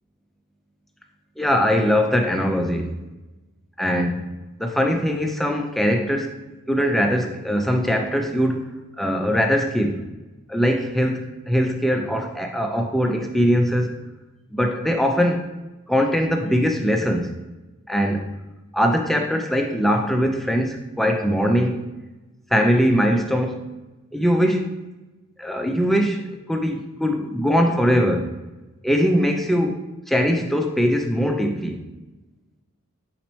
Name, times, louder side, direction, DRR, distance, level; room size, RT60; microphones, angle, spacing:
voice 1, 1.4-2.9 3.8-4.2 4.6-6.3 6.7-8.7 9.0-10.1 10.5-13.9 14.5-15.5 15.9-17.3 17.9-18.3 18.7-21.9 22.5-23.6 24.1-24.7 25.4-28.3 28.8-29.8 30.1-31.8, equal, ahead, 3 dB, 0.3 m, -21 dB
4.3 x 4.0 x 3.1 m, 1.1 s
head